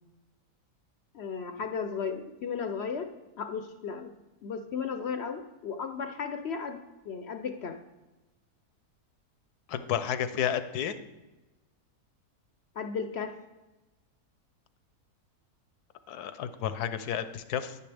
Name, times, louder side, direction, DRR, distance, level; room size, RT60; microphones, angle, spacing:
voice 1, 1.1-3.1 3.4-4.1 4.4-6.8 7.0-7.8 12.7-13.3, left 6 dB, 60° left, 7 dB, 0.7 m, -35 dB
voice 2, 9.7-10.9 16.1-17.7, left 9 dB, 85° left, 11 dB, 1.2 m, -31 dB
10.5 x 10.0 x 3.4 m, 1.1 s
omnidirectional pair, 1.6 m